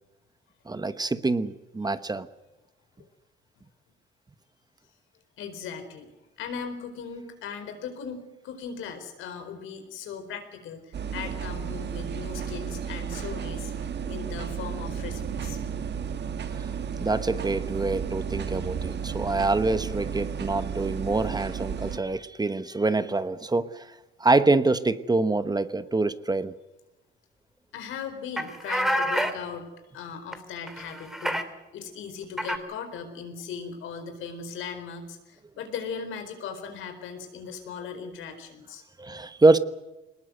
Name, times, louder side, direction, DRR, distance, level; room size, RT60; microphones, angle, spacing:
voice 1, 0.7-2.3 16.5-16.7 17.0-23.9 24.2-26.5 39.0-39.6, right 3 dB, 20° right, 12 dB, 1.1 m, -25 dB
voice 2, 5.4-6.1 6.4-15.6 27.7-31.5 31.7-38.8, left 6 dB, 90° left, 7 dB, 4.3 m, -38 dB
sound 1, 10.9-22.0, right 7 dB, 60° right, 1.6 m, -33 dB
sound 2, 28.4-29.3 30.3-30.4 30.7-31.4 32.4-32.6, equal, ahead, 2.4 m, -27 dB
22.5 x 20.0 x 7.9 m, 1.1 s
cardioid pair, 90°, 20 cm